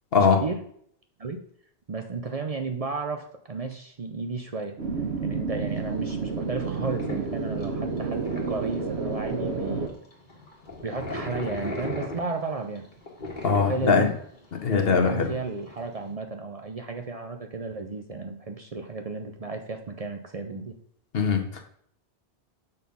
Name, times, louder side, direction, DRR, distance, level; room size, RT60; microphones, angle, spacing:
voice 1, 0.2-0.6 1.2-1.4 1.9-4.8 5.2-9.9 10.8-12.8 13.7-14.1 14.7-20.8, right 4 dB, 40° right, 5 dB, 0.6 m, -33 dB
sound 1, 4.8-9.9, right 4 dB, 85° right, 1.3 m, -30 dB
sound 2, 5.7-16.1, left 2 dB, 50° left, 1.8 m, -38 dB
voice 2, 13.4-14.1 14.6-15.3 21.1-21.6, left 5 dB, 65° left, 5 dB, 1.2 m, -21 dB
6.6 x 4.0 x 5.3 m, 0.62 s
omnidirectional pair, 1.1 m